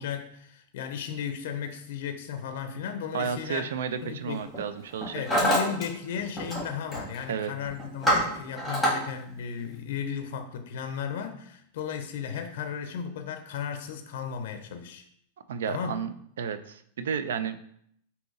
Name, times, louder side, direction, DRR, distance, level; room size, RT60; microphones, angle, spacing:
voice 1, 0.0-3.7 4.0-4.5 5.1-15.0 15.7-16.0, left 7 dB, 60° left, 6 dB, 0.5 m, -35 dB
voice 2, 3.1-5.4 7.3-7.5 15.5-17.6, right 7 dB, 90° right, 11 dB, 0.4 m, -32 dB
Hammer, 3.3-3.6 4.3-4.6 4.9-5.8 6.1-6.6 6.9-7.2 7.6-8.9, equal, 5° right, 1.6 m, -26 dB
3.9 x 2.7 x 3.8 m, 0.68 s
supercardioid pair, 165°, 0 cm